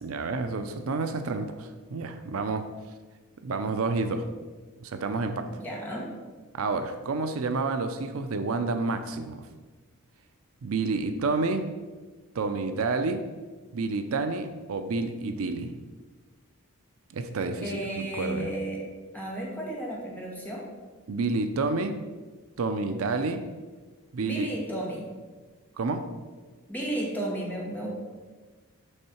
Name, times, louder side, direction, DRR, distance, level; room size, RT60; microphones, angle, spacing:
voice 1, 0.0-2.7 3.4-4.3 4.8-5.5 6.5-9.5 10.6-11.7 12.3-13.2 13.7-15.7 17.1-18.5 21.1-22.0 22.6-23.4 24.1-24.5 25.8-26.1, right 3 dB, 70° right, 8 dB, 0.5 m, -29 dB
voice 2, 5.5-6.1 17.6-18.8 19.1-20.7 24.2-25.1 26.7-27.9, right 1 dB, 10° left, -4 dB, 1.5 m, -33 dB
6.6 x 5.4 x 4.4 m, 1.3 s
head